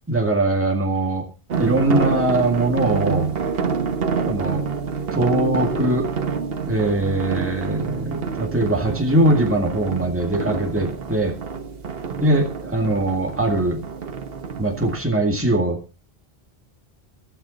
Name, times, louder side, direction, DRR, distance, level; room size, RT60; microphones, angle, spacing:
voice 1, 0.1-1.3 1.6-3.3 4.3-4.6 5.1-6.1 6.7-11.4 12.1-13.8 14.6-15.8, right 1 dB, 10° right, 2 dB, 2.1 m, -21 dB
sound 1, 1.5-15.0, right 5 dB, 65° right, 1.3 m, -27 dB
14.0 x 12.5 x 4.1 m, 0.32 s
omnidirectional pair, 1.1 m